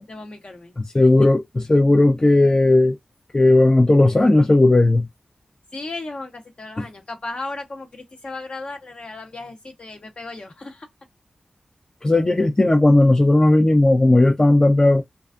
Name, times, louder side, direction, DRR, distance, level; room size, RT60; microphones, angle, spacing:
voice 1, 0.1-0.7 1.0-1.3 5.7-10.9, left 2 dB, 60° left, 0.9 m, -35 dB
voice 2, 0.8-3.0 3.3-5.1 6.8-6.9 12.0-15.0, left 2 dB, 30° left, 0.5 m, -15 dB
2.4 x 2.3 x 2.4 m
cardioid pair, 45°, 2 cm